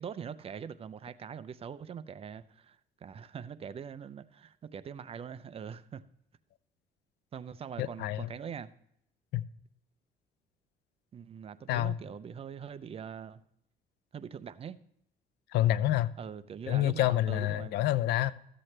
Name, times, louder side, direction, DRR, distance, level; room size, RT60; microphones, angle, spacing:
voice 1, 0.0-6.0 7.3-8.7 11.1-13.4 14.1-14.8 16.2-17.8, right 7 dB, 35° right, 0.5 m, -43 dB
voice 2, 7.8-8.3 9.3-9.4 11.7-12.0 15.5-16.1 16.7-18.3, left 14 dB, 75° left, 0.5 m, -27 dB
13.0 x 7.6 x 3.2 m
cardioid pair, 110°, 17 cm